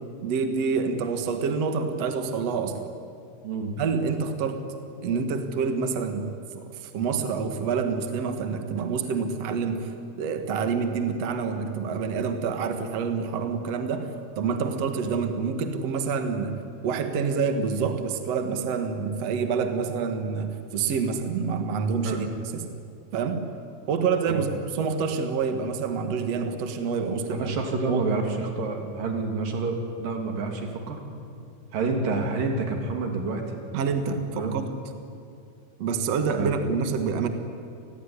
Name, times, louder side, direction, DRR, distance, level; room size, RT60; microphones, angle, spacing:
voice 1, 0.2-2.9 3.8-4.6 5.0-6.3 6.5-9.9 10.2-14.1 14.4-16.6 16.8-22.3 22.5-22.7 23.1-23.4 23.9-27.5 27.9-28.0 33.7-34.7 35.8-37.3, right 5 dB, 55° right, 7 dB, 2.7 m, -27 dB
voice 2, 27.4-31.0 31.7-33.6 34.3-34.6 36.4-36.5, right 3 dB, 85° right, 3 dB, 4.7 m, -28 dB
29.0 x 20.5 x 10.0 m, 2.5 s
omnidirectional pair, 3.8 m